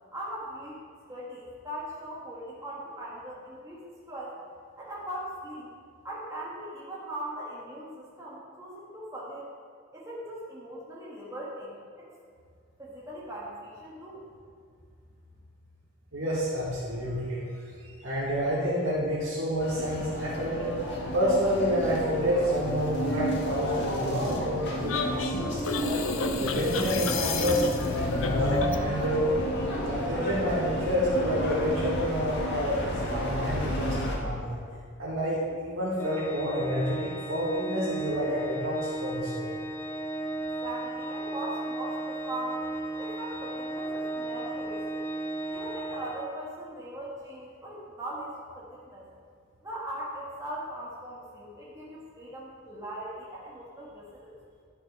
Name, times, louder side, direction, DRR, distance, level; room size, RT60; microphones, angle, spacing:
voice 1, 0.1-0.8 1.1-4.3 4.8-5.7 6.0-9.5 9.9-12.1 12.8-14.2 40.6-42.6 43.0-45.1 45.5-49.1 49.6-54.4, right 1 dB, 15° right, -7 dB, 1.6 m, -39 dB
voice 2, 16.1-17.4 17.8-20.7 21.1-25.7 26.4-27.7 28.2-29.3 29.8-34.5 35.0-39.5, equal, 80° right, -8 dB, 2.0 m, -29 dB
sound 1, 19.6-34.2, equal, 60° left, 1.8 m, -32 dB
sound 2, 24.9-28.9, left 4 dB, 80° left, 0.7 m, -31 dB
Organ, 36.0-46.7, right 2 dB, 10° left, 0.5 m, -35 dB
11.5 x 6.3 x 4.7 m, 2.2 s
head